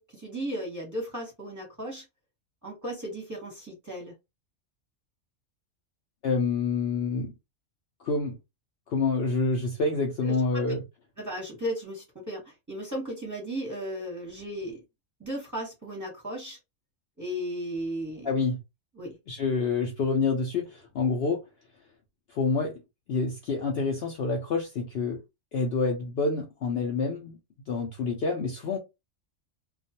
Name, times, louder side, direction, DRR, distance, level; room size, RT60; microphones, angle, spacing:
voice 1, 0.0-2.0 2.6-4.1 10.2-10.6 11.2-12.4 12.7-14.8 15.2-16.6 17.2-18.4 18.9-19.2, equal, 15° right, 0.9 m, -35 dB
voice 2, 6.2-7.3 8.0-8.4 8.9-10.8 18.2-18.6 19.3-21.4 22.3-22.8 23.1-25.2 25.5-27.4 27.7-28.8, left 4 dB, 60° left, 0.7 m, -27 dB
2.3 x 2.3 x 2.7 m
omnidirectional pair, 1.4 m